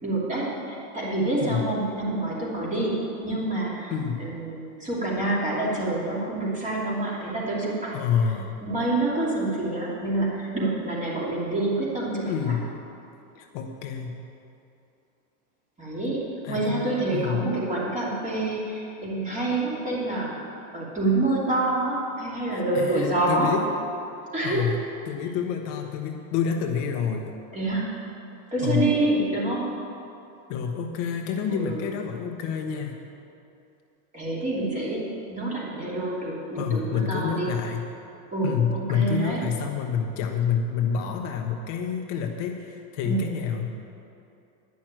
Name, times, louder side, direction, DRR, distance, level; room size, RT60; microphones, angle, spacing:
voice 1, 0.0-7.9 8.6-12.5 15.8-16.2 16.5-20.3 20.7-23.6 24.3-24.6 27.5-27.9 28.5-29.7 31.6-31.8 34.1-35.0 35.3-37.5 38.3-39.4 43.0-43.3, right 2 dB, 15° right, -6 dB, 2.9 m, -27 dB
voice 2, 3.9-4.3 7.9-8.6 12.3-12.8 13.4-14.2 16.4-17.5 22.5-23.7 24.4-24.7 25.1-27.3 28.6-29.0 30.5-32.9 36.5-37.9 38.4-43.7, left 7 dB, 55° left, 3 dB, 1.1 m, -28 dB
11.0 x 6.2 x 9.1 m, 2.7 s
supercardioid pair, 140°, 46 cm